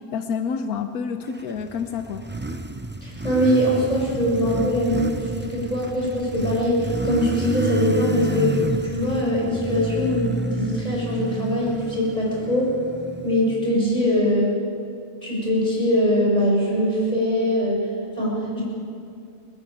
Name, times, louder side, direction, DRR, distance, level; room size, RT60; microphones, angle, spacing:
voice 1, 0.0-2.2, left 6 dB, 90° left, 7 dB, 1.3 m, -28 dB
Motorcycle, 1.4-14.1, right 2 dB, 20° right, 0.3 m, -30 dB
voice 2, 3.0-12.7 13.2-14.6 15.2-17.9 18.2-18.6, equal, 25° left, -4 dB, 7.2 m, -22 dB
29.0 x 12.0 x 8.7 m, 2.4 s
omnidirectional pair, 1.5 m